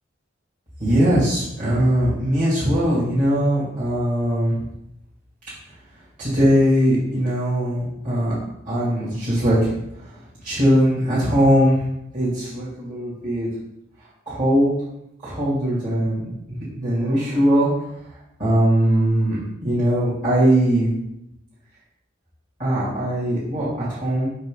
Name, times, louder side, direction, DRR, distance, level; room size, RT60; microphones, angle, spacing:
voice 1, 0.8-4.6 6.2-8.4 8.7-10.1 10.4-11.8 12.1-13.5 14.3-14.7 15.2-16.3 16.7-17.7 18.4-19.4 19.6-20.9 22.6-24.3, equal, 40° right, -11 dB, 2.6 m, -20 dB
6.3 x 5.7 x 3.8 m, 0.81 s
head